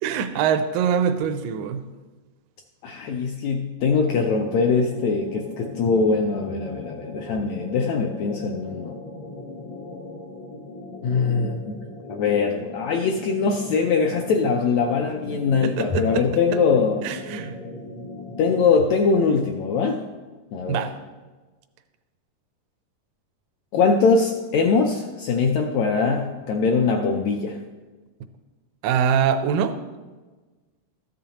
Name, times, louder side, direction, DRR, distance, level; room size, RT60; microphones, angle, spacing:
voice 1, 0.0-1.8 15.6-16.2 17.0-17.5 20.7-20.9 28.8-29.7, right 7 dB, 85° right, 8 dB, 2.2 m, -23 dB
voice 2, 2.8-8.9 11.0-11.8 12.1-17.1 18.4-20.0 20.5-20.8 23.7-27.6, left 5 dB, 80° left, 3 dB, 1.6 m, -22 dB
sound 1, 3.8-18.9, left 2 dB, 60° left, 1.2 m, -39 dB
13.5 x 9.0 x 2.9 m, 1.3 s
omnidirectional pair, 3.8 m